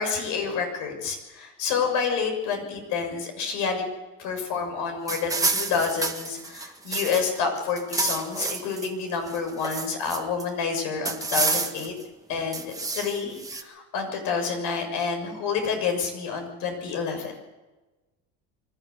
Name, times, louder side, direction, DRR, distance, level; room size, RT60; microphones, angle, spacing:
voice 1, 0.0-3.8 4.2-11.9 12.3-17.3, left 5 dB, 65° left, 4 dB, 6.7 m, -28 dB
sound 1, 5.1-7.4 7.7-8.9 9.3-10.4 11.0-12.0 12.5-13.6, right 3 dB, 10° right, 1.7 m, -29 dB
24.5 x 13.0 x 8.2 m, 1.1 s
supercardioid pair, 120°, 33 cm